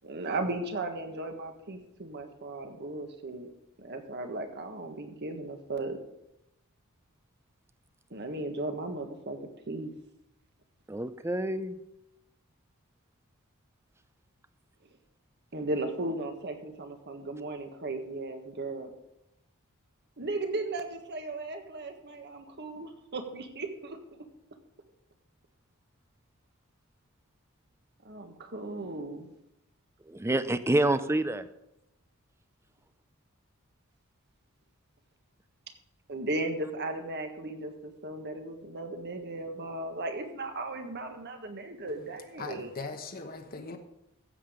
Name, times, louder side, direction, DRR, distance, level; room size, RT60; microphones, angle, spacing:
voice 1, 0.0-3.5 3.8-6.0 8.1-9.4 9.7-9.9 15.5-18.9 20.2-24.0 28.0-29.3 36.1-42.7, right 2 dB, 50° right, 1.6 m, -36 dB
voice 2, 10.9-11.8 30.1-31.5, right 1 dB, 10° right, 0.6 m, -27 dB
voice 3, 42.4-43.8, left 3 dB, 45° left, 1.1 m, -39 dB
15.5 x 7.7 x 5.1 m
head